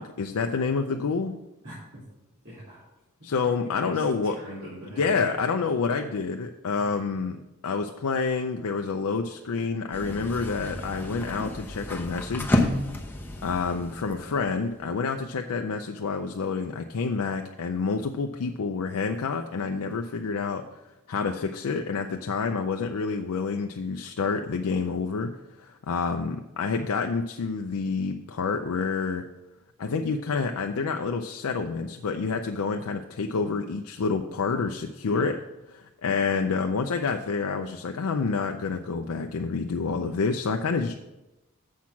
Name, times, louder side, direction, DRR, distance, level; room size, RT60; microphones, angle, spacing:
voice 1, 0.0-1.4 3.2-4.4 5.0-7.4 7.6-12.7 13.4-20.7 21.1-29.2 29.8-35.4 35.7-41.0, left 4 dB, 85° left, 5 dB, 0.5 m, -28 dB
voice 2, 1.6-2.0 2.4-2.8 3.4-5.4 35.0-35.3, equal, 60° right, -10 dB, 3.1 m, -43 dB
sound 1, 9.9-15.0, left 1 dB, 10° left, 0.8 m, -30 dB
7.4 x 6.0 x 5.7 m, 0.99 s
head